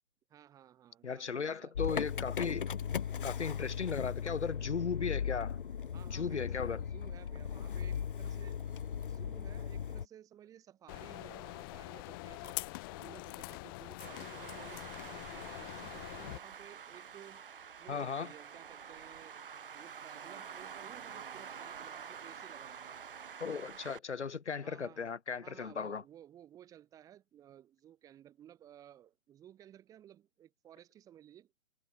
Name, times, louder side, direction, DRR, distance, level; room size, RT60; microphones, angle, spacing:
voice 1, 0.3-1.7 5.9-8.6 9.1-12.6 13.0-17.4 17.8-19.4 19.7-23.0 24.6-31.5, right 11 dB, 10° right, 6.7 m, -56 dB
voice 2, 1.0-2.7 3.2-5.6 6.0-6.8 17.9-18.3 23.4-26.0, left 6 dB, 70° left, 2.7 m, -36 dB
Motor vehicle (road) / Engine starting, 1.7-10.1, left 7 dB, 45° left, 1.3 m, -37 dB
sound 1, 10.9-16.4, left 24 dB, 20° left, 3.9 m, -44 dB
Traffic noise roadway noise, 14.0-24.0, right 7 dB, 45° right, 1.3 m, -48 dB
hypercardioid pair, 165°, 36 cm